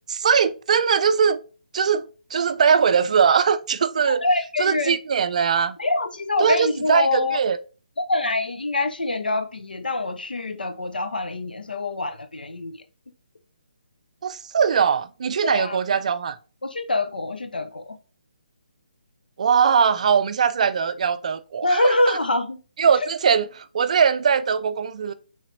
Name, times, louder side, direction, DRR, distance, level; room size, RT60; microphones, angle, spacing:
voice 1, 0.1-1.4 1.7-4.2 4.6-5.8 6.4-7.6 14.2-16.4 19.4-22.2 22.8-25.1, right 6 dB, 50° right, 0.4 m, -21 dB
voice 2, 4.1-5.0 5.8-7.4 8.0-12.8 15.4-15.8 16.6-18.0 21.6-22.6 23.0-23.1, left 2 dB, 75° left, 0.7 m, -25 dB
5.6 x 3.3 x 2.7 m
figure-of-eight pair, 140°, 5 cm